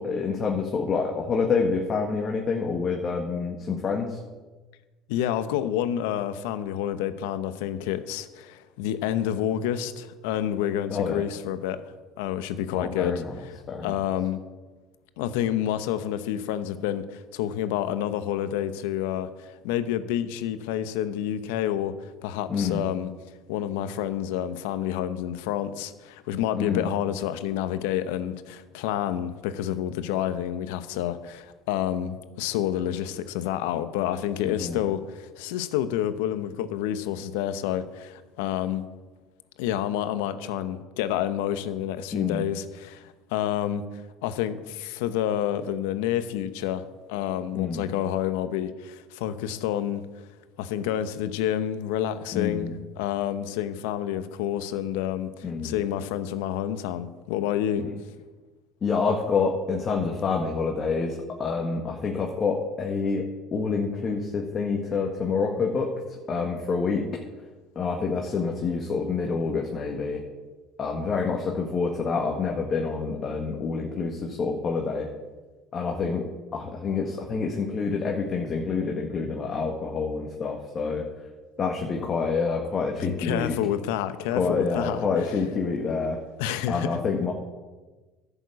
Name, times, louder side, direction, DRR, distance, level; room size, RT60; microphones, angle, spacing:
voice 1, 0.0-4.2 10.9-11.2 12.7-13.3 13.7-13.9 22.5-22.8 26.6-26.9 34.4-34.8 42.1-42.5 47.5-47.8 52.3-52.7 55.4-55.7 58.8-67.2 67.7-70.2 70.8-75.1 75.7-81.0 81.6-83.5 84.3-86.2 86.7-87.3, left 5 dB, 40° left, 1 dB, 1.6 m, -27 dB
voice 2, 5.1-11.8 12.2-14.4 15.2-23.1 23.5-38.9 39.6-46.8 47.1-50.0 50.6-57.8 83.0-85.3 86.4-87.0, left 11 dB, 80° left, 12 dB, 0.8 m, -29 dB
11.0 x 7.1 x 8.2 m, 1.3 s
hypercardioid pair, 80°, 0 cm